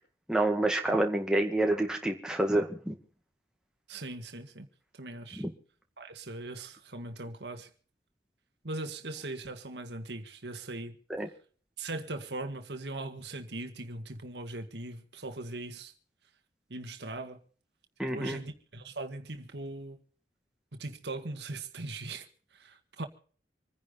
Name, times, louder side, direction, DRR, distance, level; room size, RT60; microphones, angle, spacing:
voice 1, 0.3-3.0 5.4-5.5 11.2-11.3 18.0-18.4, right 1 dB, 5° right, 1.9 m, -28 dB
voice 2, 3.9-4.7 4.9-5.4 6.0-7.7 8.6-11.0 11.8-15.9 16.7-17.4 18.1-20.0 20.7-23.1, right 2 dB, 75° right, 1.8 m, -40 dB
26.5 x 10.5 x 4.0 m
head